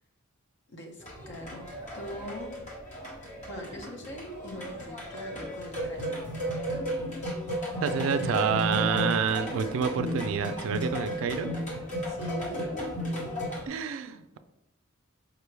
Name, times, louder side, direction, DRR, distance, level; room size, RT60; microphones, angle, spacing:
voice 1, 0.7-1.6 1.9-2.5 3.5-6.2 12.0-12.6, equal, 60° left, 3 dB, 0.8 m, -42 dB
sound 1, 1.0-13.6, equal, 35° left, 1.2 m, -34 dB
voice 2, 7.8-11.5 13.7-14.4, right 6 dB, 65° right, 11 dB, 0.3 m, -28 dB
4.8 x 2.2 x 3.2 m, 0.91 s
head